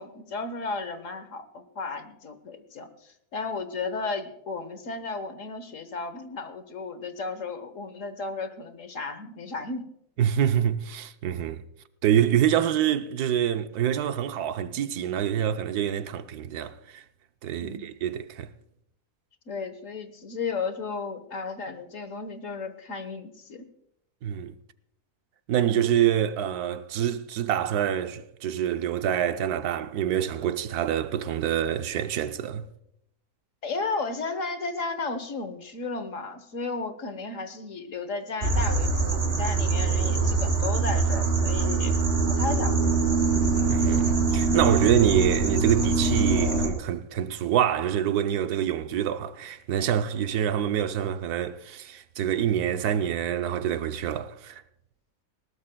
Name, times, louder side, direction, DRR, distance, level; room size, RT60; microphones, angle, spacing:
voice 1, 0.0-2.9 3.3-9.9 17.6-17.8 19.5-23.7 33.6-41.9 42.3-43.2, left 4 dB, 55° left, 1.4 m, -34 dB
voice 2, 10.2-11.6 12.0-17.0 17.4-18.5 24.2-24.5 25.5-32.7 43.7-54.6, right 10 dB, 80° right, 1.2 m, -26 dB
sound 1, 38.4-46.7, right 4 dB, 40° right, 2.1 m, -23 dB
20.0 x 18.0 x 2.2 m
omnidirectional pair, 1.6 m